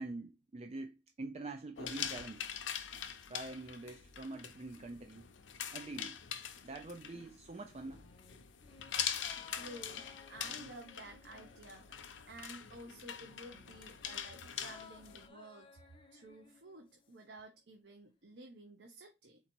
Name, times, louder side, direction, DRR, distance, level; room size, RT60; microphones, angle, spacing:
voice 1, 0.0-2.4 3.3-5.3 5.7-6.2 6.6-8.0, right 2 dB, 35° right, 0.4 m, -45 dB
sound 1, 1.8-15.3, left 9 dB, 80° left, 0.6 m, -43 dB
sound 2, 7.9-12.7 13.0-17.3 17.6-17.7, left 5 dB, 25° left, 0.6 m, -60 dB
voice 2, 9.4-15.7 16.1-19.4, right 1 dB, 65° right, 0.8 m, -53 dB
4.1 x 2.9 x 4.3 m
head